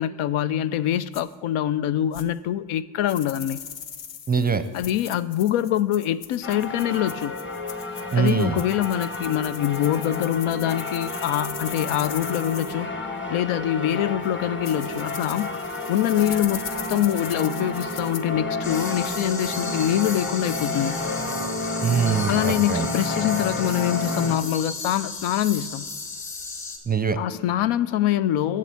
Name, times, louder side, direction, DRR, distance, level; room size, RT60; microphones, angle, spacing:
voice 1, 0.0-3.6 4.7-7.4 8.1-12.9 13.3-15.5 15.9-21.0 22.3-25.9 27.2-28.6, left 11 dB, 80° left, 16 dB, 0.6 m, -24 dB
sound 1, 1.1-1.2 2.1-2.2 3.1-12.7 14.2-14.3 14.6-18.2, left 8 dB, 60° left, 0.9 m, -39 dB
voice 2, 4.3-4.6 8.1-8.6 21.8-22.9 26.9-27.2, right 6 dB, 20° right, 11 dB, 0.5 m, -23 dB
sound 2, 6.4-24.4, left 2 dB, 25° left, 1.1 m, -31 dB
sound 3, 18.6-26.8, left 3 dB, 45° left, 1.9 m, -35 dB
7.6 x 7.5 x 8.4 m, 1.5 s
cardioid pair, 100°, 49 cm